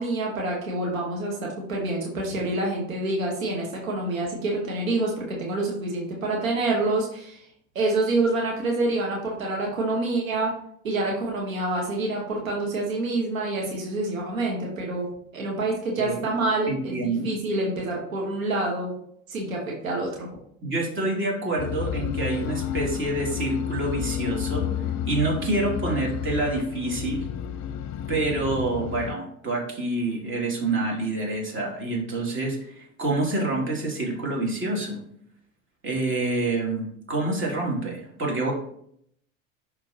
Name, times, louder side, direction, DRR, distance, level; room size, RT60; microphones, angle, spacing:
voice 1, 0.0-7.5 7.7-10.5 10.8-18.9 19.3-20.3, right 2 dB, 85° right, -1 dB, 1.3 m, -27 dB
voice 2, 16.7-17.3 20.6-24.7 25.0-27.3 28.1-35.0 35.8-38.5, right 2 dB, 30° right, -2 dB, 2.6 m, -27 dB
sound 1, 21.6-29.1, left 10 dB, 45° left, 0.7 m, -31 dB
10.5 x 3.7 x 2.8 m, 0.69 s
hypercardioid pair, 70°, 39 cm